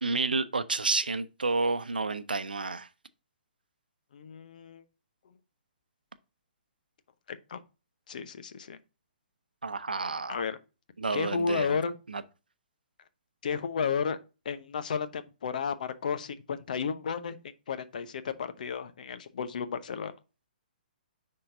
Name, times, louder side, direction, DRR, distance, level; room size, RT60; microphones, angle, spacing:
voice 1, 0.0-2.9 9.6-10.4 11.0-11.8 12.1-12.2, right 3 dB, 85° right, 0.6 m, -30 dB
voice 2, 4.1-4.8 7.3-7.6 8.1-8.8 10.3-10.6 11.1-11.9 13.4-14.2 14.4-17.4 17.7-20.1, left 6 dB, 60° left, 0.9 m, -32 dB
9.8 x 3.8 x 2.6 m
figure-of-eight pair, 130°, 5 cm